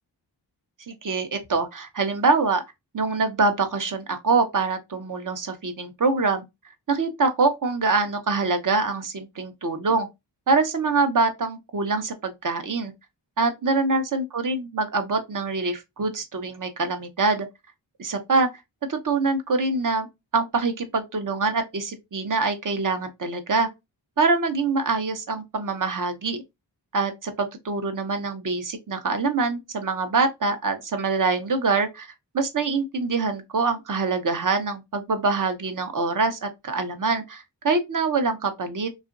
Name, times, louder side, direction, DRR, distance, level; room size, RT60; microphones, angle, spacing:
voice 1, 0.9-2.6 2.9-6.4 6.9-10.1 10.5-12.9 13.4-17.5 18.0-18.5 18.9-20.1 20.3-23.7 24.2-26.4 26.9-38.9, right 3 dB, 45° right, 0.7 m, -24 dB
2.9 x 2.4 x 2.5 m
cardioid pair, 45°, 44 cm